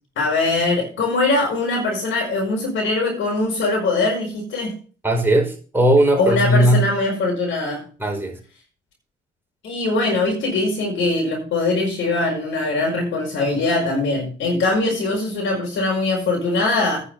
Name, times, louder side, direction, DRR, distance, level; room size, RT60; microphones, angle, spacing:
voice 1, 0.1-4.7 6.1-7.8 9.6-17.0, left 2 dB, 75° left, -1 dB, 5.0 m, -22 dB
voice 2, 5.0-6.8 8.0-8.4, right 1 dB, 10° right, 1 dB, 4.6 m, -17 dB
10.0 x 7.1 x 6.7 m, 0.39 s
cardioid pair, 90°, 20 cm